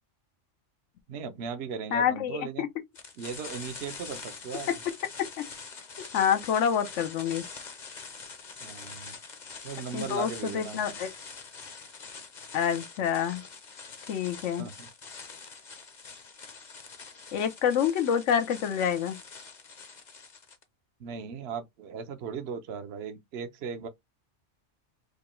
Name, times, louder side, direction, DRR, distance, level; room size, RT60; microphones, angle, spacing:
voice 1, 1.1-2.6 3.2-4.7 8.6-9.1 9.6-11.0 14.6-14.9 21.0-23.9, right 6 dB, 65° right, 1.0 m, -38 dB
voice 2, 1.9-2.7 6.1-7.5 9.9-11.1 12.5-13.4 14.1-14.6 17.3-19.2, left 8 dB, 80° left, 1.1 m, -27 dB
sound 1, 2.9-20.6, left 5 dB, 45° left, 0.9 m, -44 dB
5.0 x 2.2 x 3.0 m
omnidirectional pair, 1.2 m